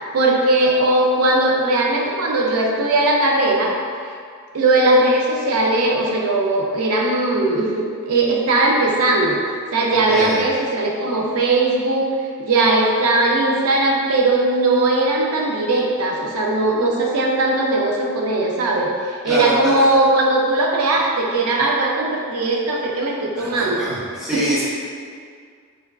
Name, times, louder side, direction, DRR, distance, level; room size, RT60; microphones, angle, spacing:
voice 1, 0.1-3.7 4.5-9.4 9.7-12.1 12.4-23.8 24.3-24.6, right 2 dB, 75° right, -1 dB, 0.4 m, -19 dB
voice 2, 9.9-10.4 19.2-19.7 23.4-24.6, left 1 dB, ahead, -11 dB, 0.7 m, -25 dB
3.2 x 2.3 x 2.2 m, 2.1 s
head